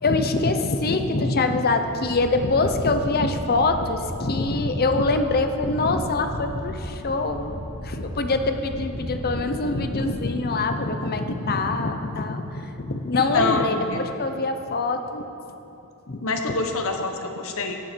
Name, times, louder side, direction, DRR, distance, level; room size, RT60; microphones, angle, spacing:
voice 1, 0.0-15.3 16.1-16.2, left 3 dB, 45° left, 7 dB, 0.8 m, -24 dB
sound 1, 1.9-10.0, equal, 60° right, 2.3 m, -36 dB
voice 2, 13.1-14.1 16.2-17.8, left 3 dB, 65° left, 4 dB, 1.1 m, -26 dB
16.0 x 8.8 x 4.5 m, 3.0 s
head